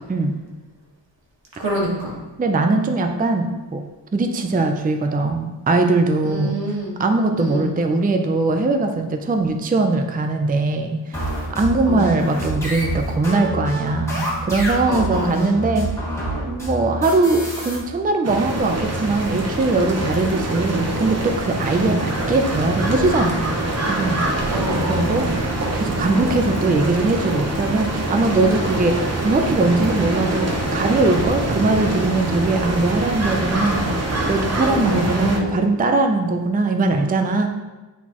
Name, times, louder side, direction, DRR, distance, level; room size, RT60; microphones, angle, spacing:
voice 1, 1.6-2.1 6.2-6.9 7.4-7.7 11.9-12.1 14.9-15.4 21.8-22.1 24.5-25.2 34.6-35.6, right 1 dB, 90° right, -3 dB, 1.7 m, -26 dB
voice 2, 2.4-3.8 4.1-6.6 7.0-11.2 11.5-15.9 16.4-23.5 23.9-24.5 24.9-33.9 34.3-37.5, right 2 dB, 20° right, 5 dB, 0.4 m, -21 dB
sound 1, 11.1-17.8, right 1 dB, 5° left, 2.1 m, -27 dB
sound 2, 18.2-35.4, right 2 dB, 35° right, 0.9 m, -24 dB
9.2 x 4.1 x 3.0 m, 1.2 s
wide cardioid pair, 115°, 43 cm